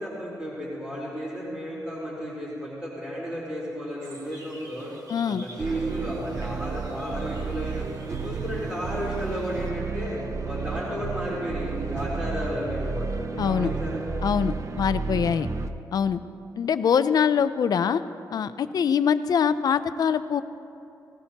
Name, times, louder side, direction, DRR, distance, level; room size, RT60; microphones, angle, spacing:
voice 1, 0.0-4.9 5.2-14.0, equal, 15° right, -10 dB, 4.0 m, -33 dB
sound 1, 4.0-9.7, right 1 dB, 65° right, 2.2 m, -49 dB
voice 2, 5.1-5.4 13.4-13.7 14.2-15.5 15.9-16.2 16.6-18.0 18.3-20.4, left 7 dB, 70° left, 12 dB, 0.5 m, -23 dB
sound 2, 5.6-15.7, right 5 dB, 50° right, 0.6 m, -32 dB
18.5 x 18.5 x 2.9 m, 2.8 s
wide cardioid pair, 155°, 7 cm